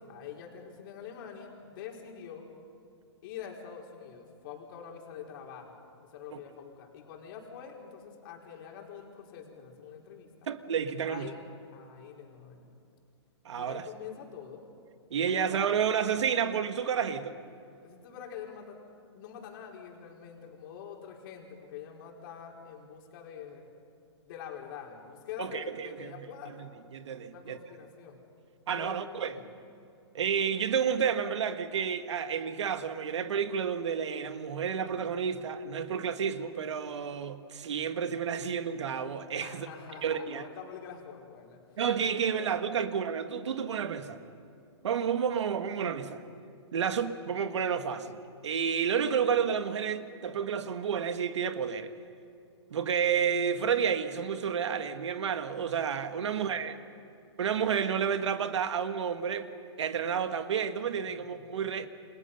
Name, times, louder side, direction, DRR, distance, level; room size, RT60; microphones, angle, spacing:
voice 1, 0.0-2.5 3.2-10.3 11.0-11.4 11.7-12.7 13.5-14.6 15.2-15.3 17.8-18.8 19.1-23.7 24.3-26.5 27.3-28.2 28.7-29.5 39.4-41.6 42.3-42.9 56.2-57.0 61.1-61.6, left 8 dB, 50° left, 4.8 m, -45 dB
voice 2, 10.5-11.3 13.5-13.8 15.1-17.4 25.4-26.3 26.6-27.6 28.7-29.4 30.1-39.7 40.0-40.4 41.8-44.2 44.8-46.2 46.7-51.9 52.7-56.8 57.4-59.5 59.8-61.9, right 7 dB, 75° right, 1.8 m, -30 dB
30.0 x 26.5 x 5.6 m
hypercardioid pair, 140°, 15 cm